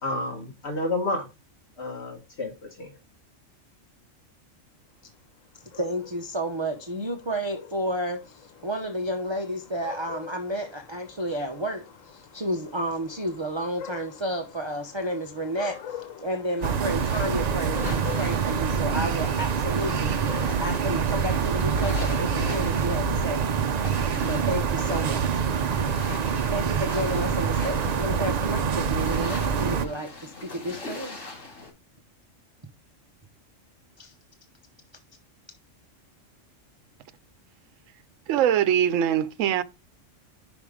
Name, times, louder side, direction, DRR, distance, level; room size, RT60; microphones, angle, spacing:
voice 1, 0.0-1.3 1.8-2.9, left 2 dB, 60° left, 1.5 m, -30 dB
sound 1, 5.6-20.7, left 8 dB, 90° left, 1.5 m, -45 dB
voice 2, 5.7-20.3 20.6-23.4 24.2-25.4 26.5-31.2 34.0-34.1, right 1 dB, 25° right, 0.7 m, -31 dB
sound 2, 16.6-31.7, left 3 dB, 75° left, 2.6 m, -41 dB
sound 3, 16.6-29.9, right 6 dB, 60° right, 0.4 m, -26 dB
voice 3, 38.3-39.6, right 10 dB, 75° right, 1.0 m, -22 dB
5.6 x 5.3 x 4.8 m
omnidirectional pair, 1.3 m